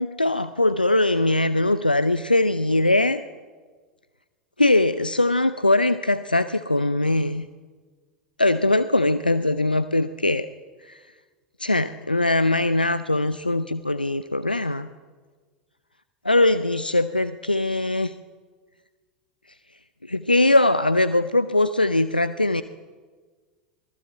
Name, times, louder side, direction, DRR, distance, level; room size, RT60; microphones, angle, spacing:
voice 1, 0.0-3.2 4.6-7.5 8.4-10.5 10.9-11.0 11.6-14.9 16.2-18.1 20.1-22.6, left 2 dB, 90° left, 13 dB, 0.6 m, -21 dB
26.5 x 20.5 x 7.9 m, 1.5 s
figure-of-eight pair, 85°, 5 cm